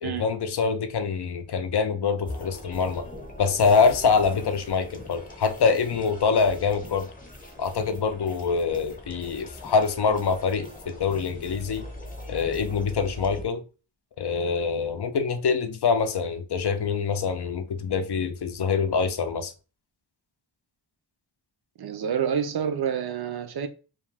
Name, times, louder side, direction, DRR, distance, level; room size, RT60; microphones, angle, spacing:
voice 1, 0.0-3.1 3.4-7.1 7.6-11.8 12.3-13.6 14.2-19.5, left 5 dB, 60° left, 0.5 m, -25 dB
sound 1, 2.2-13.4, left 1 dB, 20° left, 0.8 m, -41 dB
voice 2, 21.8-23.7, right 8 dB, 55° right, 0.5 m, -28 dB
2.4 x 2.3 x 3.2 m
wide cardioid pair, 50°, 46 cm